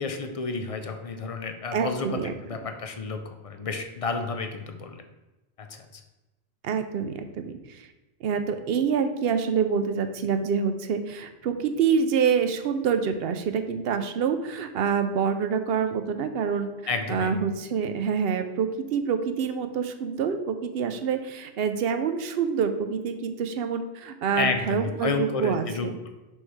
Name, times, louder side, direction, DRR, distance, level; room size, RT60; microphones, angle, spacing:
voice 1, 0.0-5.0 5.6-6.0 16.9-17.3 24.4-26.1, left 4 dB, 40° left, 6 dB, 0.5 m, -31 dB
voice 2, 1.7-2.3 6.6-7.9 8.2-16.7 17.1-26.0, right 6 dB, 70° right, 8 dB, 0.8 m, -26 dB
6.3 x 3.3 x 4.6 m, 1.1 s
omnidirectional pair, 1.1 m